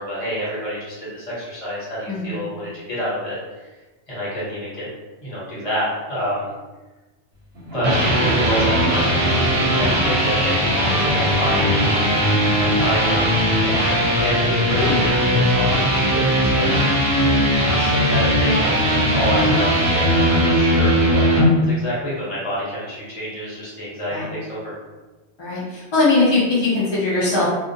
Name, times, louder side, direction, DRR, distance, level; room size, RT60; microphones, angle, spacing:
voice 1, 0.0-3.4 4.1-4.9 5.2-6.5 7.7-11.8 12.6-16.9 17.8-24.7, equal, 30° left, -8 dB, 0.9 m, -28 dB
voice 2, 2.1-2.4 14.8-15.0 16.6-16.8 20.4-20.8 24.1-24.4 25.4-27.5, left 3 dB, 45° left, -8 dB, 0.3 m, -21 dB
sound 1, 7.6-21.5, equal, 65° right, 0.7 m, -18 dB
2.3 x 2.0 x 2.6 m, 1.2 s
omnidirectional pair, 1.2 m